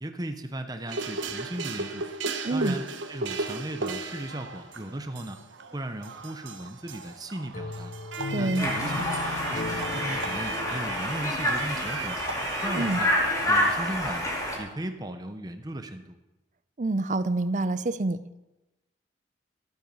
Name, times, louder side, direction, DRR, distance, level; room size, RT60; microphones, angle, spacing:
voice 1, 0.0-2.0 2.5-2.8 3.1-5.4 5.7-7.9 8.4-9.2 9.5-12.2 12.6-13.1 13.5-14.2 14.5-16.2, right 1 dB, 20° right, 7 dB, 0.9 m, -36 dB
sound 1, 0.9-13.1, right 3 dB, 85° right, 1.0 m, -36 dB
voice 2, 2.4-2.8 8.3-8.7 12.7-13.0 16.8-18.2, right 2 dB, 40° right, 14 dB, 0.5 m, -27 dB
sound 2, 7.5-12.4, left 3 dB, 45° left, 0.4 m, -37 dB
Conversation, 8.6-14.6, left 1 dB, 20° left, 2.0 m, -28 dB
12.5 x 9.3 x 5.4 m, 1.0 s
head